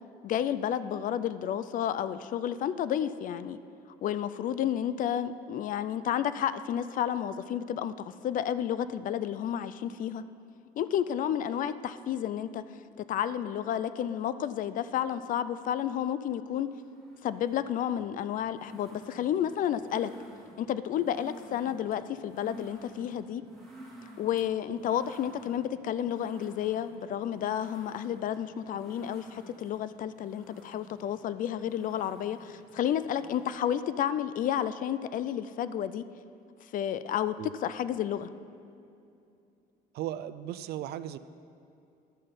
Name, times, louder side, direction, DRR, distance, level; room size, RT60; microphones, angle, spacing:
voice 1, 0.2-3.6 4.0-10.2 10.8-12.6 13.1-16.7 17.2-20.1 20.6-23.4 24.2-36.0 36.7-38.3, left 10 dB, 55° left, 14 dB, 0.4 m, -31 dB
sound 1, 16.6-33.5, right 1 dB, ahead, 2.1 m, -52 dB
voice 2, 39.9-41.2, right 12 dB, 70° right, 14 dB, 0.4 m, -36 dB
11.5 x 5.7 x 5.1 m, 2.6 s
cardioid pair, 110°, 17 cm